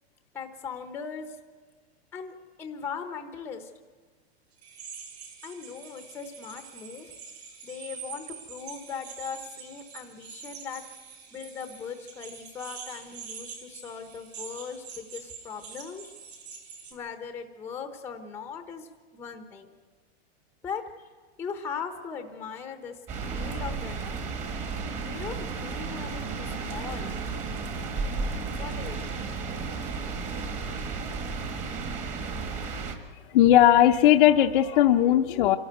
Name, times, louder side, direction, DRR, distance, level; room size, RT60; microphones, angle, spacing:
voice 1, 0.3-1.4 2.1-3.7 5.4-7.1 7.6-16.1 16.9-19.7 20.6-21.1 21.4-24.3 25.0-27.2 28.6-29.2, left 6 dB, 5° left, 7 dB, 0.9 m, -39 dB
sound 1, 4.6-16.9, right 6 dB, 75° right, 6.3 m, -45 dB
sound 2, 23.1-33.0, right 4 dB, 20° right, 1.5 m, -33 dB
voice 2, 33.3-35.6, left 12 dB, 50° left, 3 dB, 0.7 m, -18 dB
27.0 x 12.5 x 9.3 m, 1.5 s
supercardioid pair, 165°, 32 cm